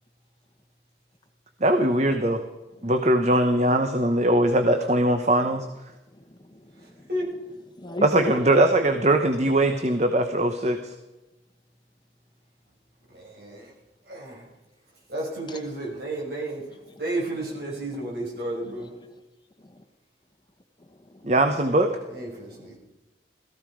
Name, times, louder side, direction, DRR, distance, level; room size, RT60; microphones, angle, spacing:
voice 1, 1.6-2.4 2.8-5.7 8.0-10.9 21.2-21.9, right 1 dB, 40° right, 7 dB, 1.0 m, -21 dB
voice 2, 6.1-7.1 7.7-8.4 15.5-15.6 16.9-17.0 18.8-19.1 19.6-19.8 20.8-21.3 22.4-22.7, left 1 dB, 25° left, 6 dB, 1.1 m, -38 dB
voice 3, 13.1-13.7 14.1-14.5 15.1-16.6 17.0-18.9 22.1-22.8, right 1 dB, 60° right, -2 dB, 5.9 m, -32 dB
17.5 x 14.5 x 5.0 m, 1.0 s
head